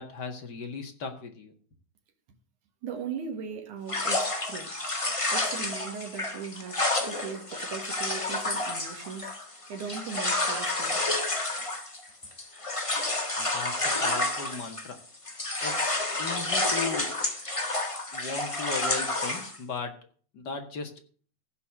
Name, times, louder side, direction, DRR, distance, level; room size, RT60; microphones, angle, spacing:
voice 1, 0.0-1.5 13.4-15.0 15.6-17.2 18.1-20.1 20.3-21.0, left 4 dB, 40° left, 2.1 m, -37 dB
voice 2, 2.8-4.7 5.3-9.4 9.7-11.0, right 6 dB, 90° right, 3.1 m, -38 dB
sound 1, 3.9-15.0 15.3-19.6, left 2 dB, 25° left, 0.7 m, -30 dB
16.0 x 5.7 x 7.7 m
omnidirectional pair, 3.4 m